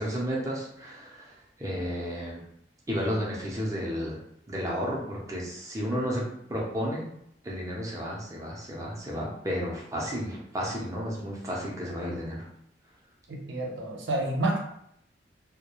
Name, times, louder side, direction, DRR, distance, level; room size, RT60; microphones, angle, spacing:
voice 1, 0.0-2.4 2.9-4.2 4.5-6.2 6.5-7.0 7.4-12.5, equal, 20° right, -4 dB, 0.5 m, -32 dB
voice 2, 13.3-14.6, right 1 dB, 85° right, 0 dB, 0.6 m, -29 dB
2.3 x 2.1 x 2.9 m, 0.73 s
head